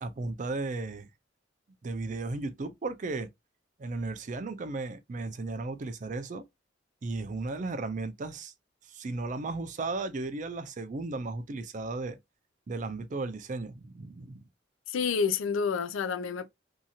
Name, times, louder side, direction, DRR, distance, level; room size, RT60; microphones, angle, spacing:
voice 1, 0.0-1.1 1.8-3.3 3.8-6.4 7.0-8.5 8.8-12.2 12.7-14.4, right 3 dB, 40° right, 0.4 m, -35 dB
voice 2, 14.9-16.5, left 6 dB, 90° left, 0.4 m, -29 dB
2.7 x 2.3 x 2.7 m
head